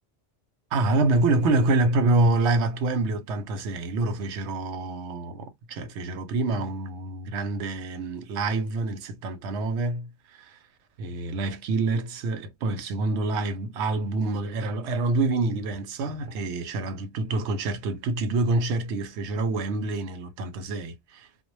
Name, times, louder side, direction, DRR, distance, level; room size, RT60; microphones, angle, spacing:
voice 1, 0.7-10.6 11.0-21.3, right 2 dB, 75° right, 0.9 m, -26 dB
2.1 x 2.1 x 3.0 m
omnidirectional pair, 1.2 m